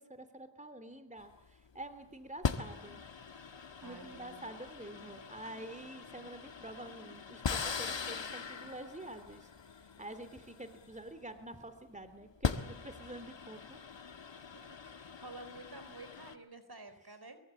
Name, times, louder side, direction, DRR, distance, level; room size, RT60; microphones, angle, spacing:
voice 1, 0.0-3.0 3.8-9.5 9.8-13.8, right 1 dB, 15° right, 9 dB, 3.2 m, -48 dB
sound 1, 1.2-1.5 2.4-11.4 12.2-16.4, left 5 dB, 85° left, 1.8 m, -41 dB
voice 2, 3.8-4.5 14.7-17.4, right 2 dB, 60° right, 10 dB, 4.2 m, -51 dB
24.5 x 23.5 x 8.5 m, 0.81 s
wide cardioid pair, 45°, 43 cm